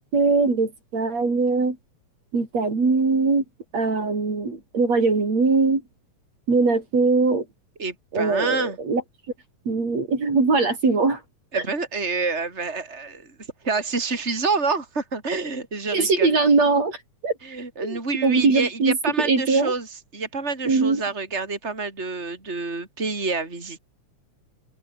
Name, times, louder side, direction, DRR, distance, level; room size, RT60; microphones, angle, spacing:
voice 1, 0.0-1.8 2.3-3.4 3.7-5.8 6.5-7.5 8.1-9.0 9.7-11.2 11.5-11.6 15.9-17.0 17.2-17.4 17.8-19.7 20.6-21.0, right 4 dB, 60° right, 6.7 m, -21 dB
voice 2, 7.8-8.8 11.5-13.3 13.6-16.4 17.4-19.9 20.1-23.8, right 4 dB, 20° right, 5.0 m, -28 dB
open air
omnidirectional pair, 3.3 m